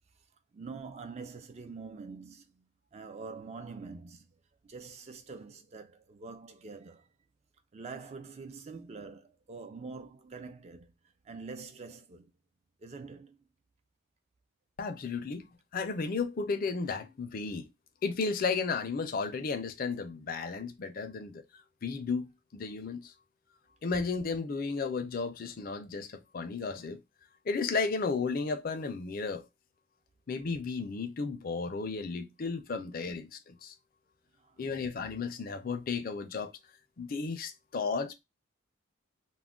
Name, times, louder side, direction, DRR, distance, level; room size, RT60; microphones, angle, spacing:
voice 1, 0.5-2.6 2.9-4.3 4.7-7.1 7.7-10.9 11.2-12.3 12.8-13.4 33.1-33.2 34.4-34.6, right 4 dB, 30° right, 0.3 m, -45 dB
voice 2, 14.8-15.5 15.7-17.7 18.0-21.4 21.8-23.1 23.8-27.0 27.5-29.4 30.3-33.7 34.6-36.5 37.0-38.1, left 4 dB, 45° left, 0.4 m, -33 dB
2.3 x 2.0 x 3.5 m
head